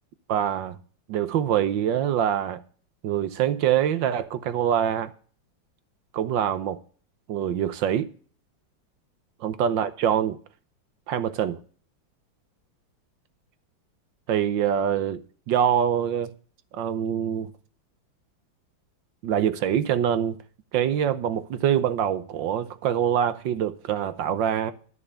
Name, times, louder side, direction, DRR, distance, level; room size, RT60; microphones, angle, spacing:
voice 1, 0.3-0.8 1.1-2.6 3.0-5.1 6.1-6.8 7.3-8.1 9.4-10.4 11.1-11.6 14.3-16.3 16.7-17.5 19.2-20.4 20.7-24.7, right 9 dB, 75° right, 1.5 m, -24 dB
12.5 x 6.9 x 6.9 m
omnidirectional pair, 2.1 m